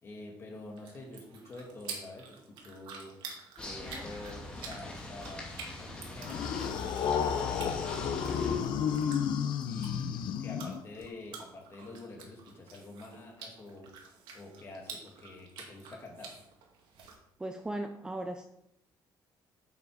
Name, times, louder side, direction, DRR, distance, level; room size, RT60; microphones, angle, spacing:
voice 1, 0.0-3.2 3.6-5.5 5.8-9.4 9.6-16.4, left 2 dB, 30° left, 0 dB, 2.3 m, -47 dB
sound 1, 0.5-17.1, right 5 dB, 85° right, 2.2 m, -49 dB
sound 2, 3.6-8.6, left 2 dB, 10° left, 2.3 m, -43 dB
sound 3, 6.2-11.0, left 7 dB, 65° left, 0.7 m, -31 dB
voice 2, 17.4-18.5, right 1 dB, 10° right, 5 dB, 0.5 m, -37 dB
8.2 x 7.1 x 5.0 m, 0.80 s
cardioid pair, 160°, 8 cm